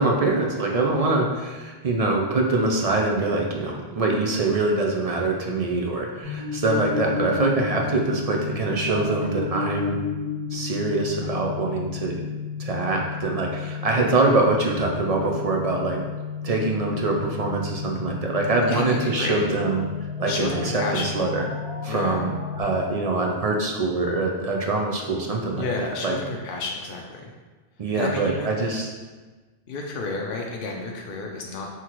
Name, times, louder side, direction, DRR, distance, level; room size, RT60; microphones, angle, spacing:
voice 1, 0.0-10.0 10.5-12.2 12.6-16.0 16.4-19.8 20.2-21.4 21.8-22.3 22.6-26.2 27.8-28.9, right 2 dB, 55° right, 0 dB, 0.4 m, -24 dB
sound 1, 6.2-22.6, left 6 dB, 30° right, 1.3 m, -32 dB
voice 2, 18.7-19.5 20.3-21.1 21.9-22.2 25.6-27.3 27.9-28.7 29.7-31.7, left 3 dB, 60° left, 0 dB, 0.7 m, -31 dB
5.8 x 3.0 x 3.0 m, 1.3 s
omnidirectional pair, 1.2 m